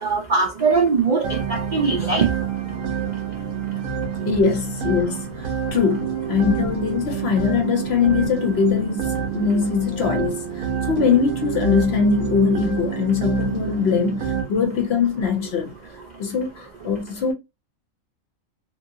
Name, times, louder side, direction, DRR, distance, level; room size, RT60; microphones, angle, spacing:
voice 1, 0.0-2.3, right 4 dB, 65° right, 0.4 m, -21 dB
sound 1, 1.2-14.4, right 7 dB, 90° right, 1.2 m, -28 dB
voice 2, 4.3-5.3 5.7-15.7 16.2-17.3, left 6 dB, 60° left, 0.8 m, -22 dB
2.9 x 2.6 x 2.6 m
omnidirectional pair, 1.4 m